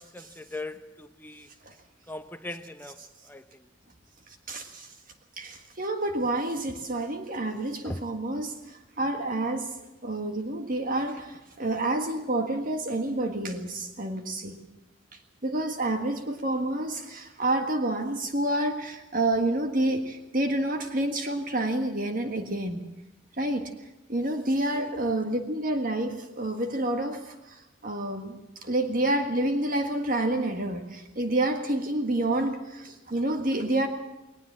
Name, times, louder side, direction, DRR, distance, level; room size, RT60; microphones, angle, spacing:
voice 1, 0.0-1.5 2.1-3.0 3.3-3.4 7.8-8.1 24.7-24.9, left 2 dB, 10° left, 0.9 m, -39 dB
voice 2, 4.3-4.9 5.4-9.7 10.0-14.6 15.4-22.8 23.4-23.7 24.1-33.9, right 1 dB, 45° right, 1.6 m, -29 dB
20.5 x 20.0 x 7.4 m
head